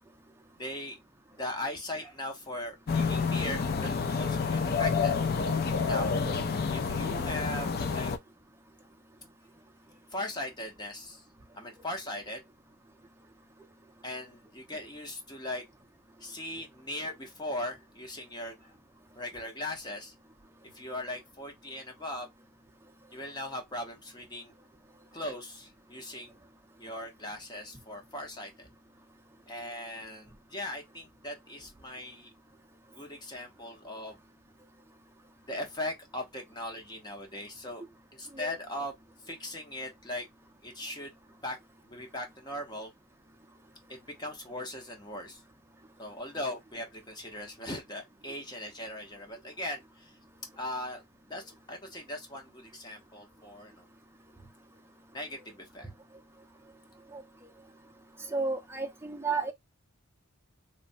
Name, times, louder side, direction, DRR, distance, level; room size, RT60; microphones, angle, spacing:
voice 1, 0.6-1.0 1.3-5.1 5.8-6.2 6.7-8.1 10.1-11.3 11.5-12.4 14.0-15.6 16.2-18.7 19.2-20.1 20.7-22.3 23.1-24.5 25.1-26.3 26.8-28.7 29.5-32.3 32.9-34.2 35.5-37.8 38.1-38.9 39.2-40.3 40.6-41.2 41.4-41.6 41.9-42.9 43.9-45.4 46.0-50.2 50.5-51.0 51.3-53.9 55.1-55.9, left 1 dB, 20° left, 0.7 m, -39 dB
sound 1, 2.9-8.2, left 5 dB, 45° left, 0.4 m, -29 dB
voice 2, 58.3-59.5, right 4 dB, 10° right, 0.5 m, -31 dB
3.2 x 2.1 x 2.5 m
head